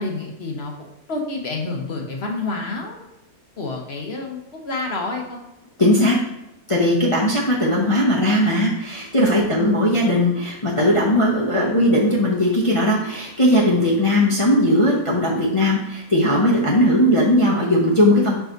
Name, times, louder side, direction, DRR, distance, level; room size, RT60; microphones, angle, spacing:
voice 1, 0.0-3.1 3.6-5.4 9.6-9.7, left 3 dB, 50° left, 1 dB, 1.2 m, -29 dB
voice 2, 5.8-6.2 6.7-18.4, left 1 dB, 25° left, -5 dB, 0.9 m, -18 dB
5.7 x 5.0 x 3.9 m, 0.89 s
omnidirectional pair, 1.5 m